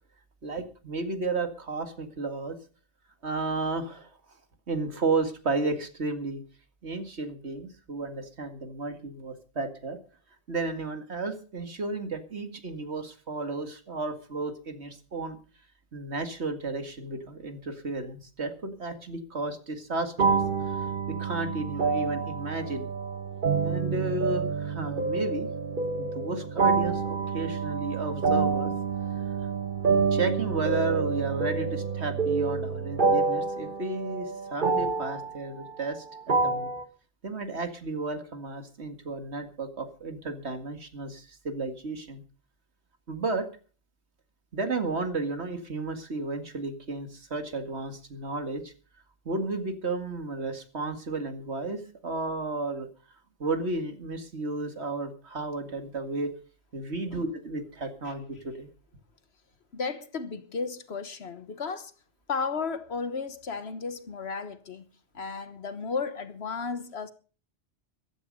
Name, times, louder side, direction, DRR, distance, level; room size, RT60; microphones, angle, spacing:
voice 1, 0.4-2.6 3.2-4.1 4.7-6.4 6.8-10.0 10.5-15.4 15.9-22.9 23.6-25.5 26.0-28.7 29.4-29.5 30.1-36.7 37.2-42.2 43.1-43.5 44.5-48.7 49.3-52.9 53.4-56.3 56.7-58.7, right 3 dB, 70° right, 2.3 m, -33 dB
sound 1, 20.2-36.8, right 4 dB, 45° right, 1.5 m, -28 dB
voice 2, 59.7-61.9 62.3-64.8 65.1-67.1, left 5 dB, 65° left, 1.5 m, -34 dB
15.0 x 12.0 x 5.4 m
omnidirectional pair, 1.2 m